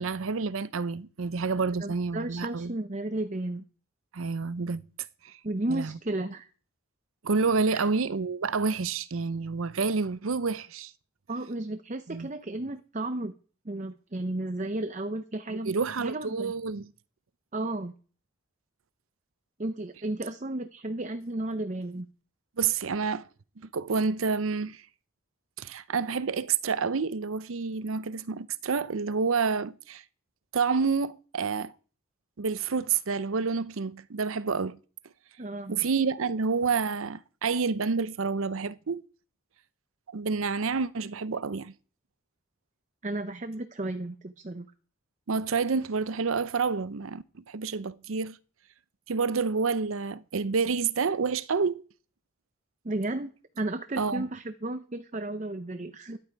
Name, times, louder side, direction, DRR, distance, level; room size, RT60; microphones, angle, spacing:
voice 1, 0.0-2.7 4.1-4.8 5.2-5.4 5.7-5.9 7.2-10.9 12.1-12.3 15.5-16.9 22.6-23.3 23.6-24.8 25.6-30.0 30.5-31.7 32.4-34.8 35.7-39.1 40.1-41.7 45.3-48.4 49.1-51.8 54.0-54.3, right 5 dB, 80° right, 0.6 m, -29 dB
voice 2, 1.8-3.6 5.4-6.5 7.7-7.9 11.3-13.3 13.6-16.5 17.5-17.9 19.6-22.1 35.4-35.8 43.0-44.6 52.8-56.2, right 2 dB, 35° right, 0.7 m, -33 dB
13.5 x 11.0 x 4.7 m
head